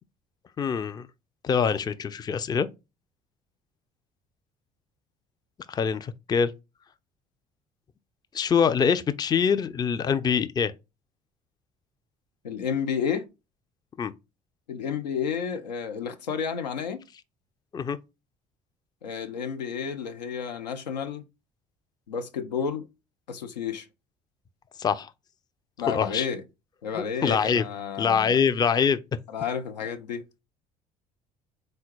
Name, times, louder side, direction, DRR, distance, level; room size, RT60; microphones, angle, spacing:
voice 1, 0.6-1.1 1.4-2.7 5.7-6.5 8.3-10.7 14.0-14.1 17.7-18.0 24.8-25.1 25.9-26.3 27.2-27.6 28.0-29.0, left 6 dB, 20° left, 0.4 m, -24 dB
voice 2, 12.4-13.3 14.7-17.1 19.0-21.2 22.1-22.9 23.3-23.9 25.8-26.4 26.8-28.4 29.3-30.2, left 7 dB, 80° left, 0.5 m, -31 dB
3.7 x 2.2 x 4.4 m
figure-of-eight pair, 55°, 21 cm